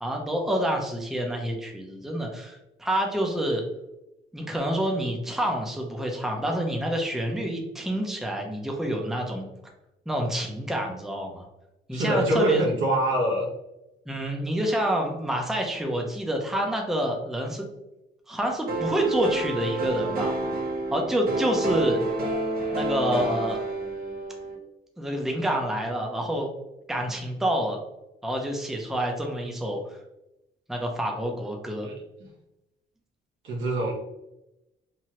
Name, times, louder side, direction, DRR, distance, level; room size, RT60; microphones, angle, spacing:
voice 1, 0.0-3.6 4.3-9.5 10.1-11.5 11.9-12.7 14.1-17.7 18.3-20.3 20.9-22.0 22.7-23.6 25.0-26.5 26.9-27.8 28.2-30.0 30.7-31.9, right 1 dB, ahead, 1 dB, 0.5 m, -28 dB
voice 2, 11.9-13.5 31.8-31.9 33.4-33.9, right 1 dB, 75° right, -2 dB, 1.0 m, -24 dB
sound 1, 18.7-24.6, right 2 dB, 50° right, 0.9 m, -29 dB
3.0 x 2.3 x 2.8 m, 0.91 s
cardioid pair, 90°, 20 cm